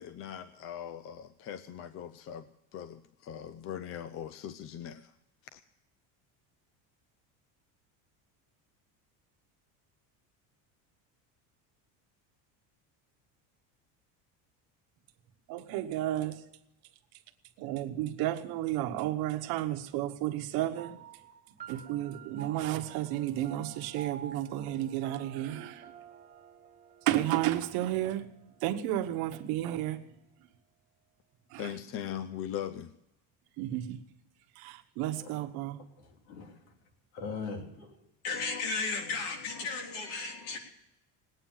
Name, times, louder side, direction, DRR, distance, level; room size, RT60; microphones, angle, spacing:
voice 1, 0.0-5.1 5.5-5.6 31.6-32.9, left 10 dB, 35° left, 0.5 m, -40 dB
voice 2, 15.5-16.4 17.6-21.0 21.7-25.9 27.1-28.2 28.6-30.0 31.5-31.6 33.6-34.0 34.6-35.8, right 13 dB, 60° right, 1.2 m, -32 dB
sound 1, 20.8-29.6, right 7 dB, 20° right, 1.2 m, -50 dB
voice 3, 36.0-36.6 37.1-38.0 38.2-40.6, left 4 dB, 70° left, 3.7 m, -36 dB
19.5 x 9.1 x 7.3 m
cardioid pair, 175°, 40 cm